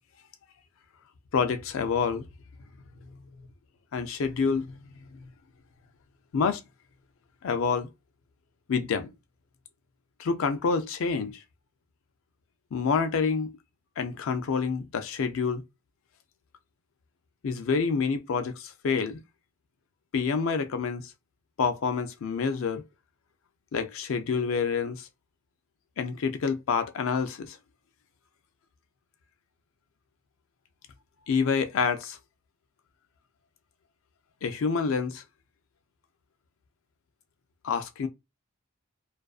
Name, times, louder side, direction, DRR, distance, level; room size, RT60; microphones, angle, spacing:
voice 1, 1.3-2.2 3.9-5.3 6.3-6.6 7.4-7.9 8.7-9.1 10.2-11.4 12.7-13.5 14.0-15.6 17.4-19.2 20.1-21.0 21.6-22.8 23.7-25.1 26.0-27.6 31.3-32.2 34.4-35.2 37.6-38.1, left 5 dB, 60° left, 0.4 m, -27 dB
2.4 x 2.3 x 2.3 m
head